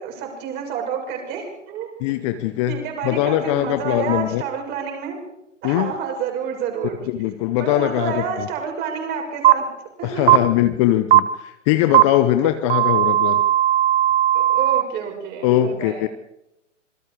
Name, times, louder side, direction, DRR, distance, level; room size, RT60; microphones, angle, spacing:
voice 1, 0.0-2.1 2.7-5.2 5.6-7.0 7.6-9.7 10.0-10.4 14.3-16.1, right 6 dB, 25° right, 2 dB, 6.6 m, -29 dB
voice 2, 2.0-2.8 3.0-4.4 5.6-5.9 7.1-8.5 10.0-13.4 15.4-16.1, left 13 dB, 25° left, 11 dB, 0.8 m, -21 dB
sound 1, 9.4-9.5 10.3-10.4 11.1-11.2 11.9-12.0 12.7-14.8, right 13 dB, 50° right, 1.6 m, -15 dB
27.0 x 23.0 x 4.9 m, 0.87 s
figure-of-eight pair, 130°, 38 cm